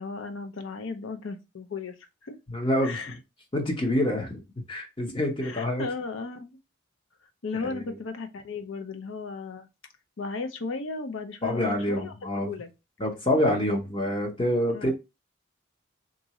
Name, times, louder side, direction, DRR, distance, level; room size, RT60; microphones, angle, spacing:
voice 1, 0.0-2.0 2.2-2.4 2.8-3.1 5.1-5.2 5.4-6.6 7.4-9.7 10.2-12.7 14.7-14.9, left 4 dB, 75° left, 0.6 m, -35 dB
voice 2, 2.5-3.2 3.5-4.4 4.7-5.8 7.6-7.8 11.4-12.5 13.0-14.9, left 1 dB, 25° left, 0.8 m, -26 dB
3.6 x 2.6 x 3.0 m
head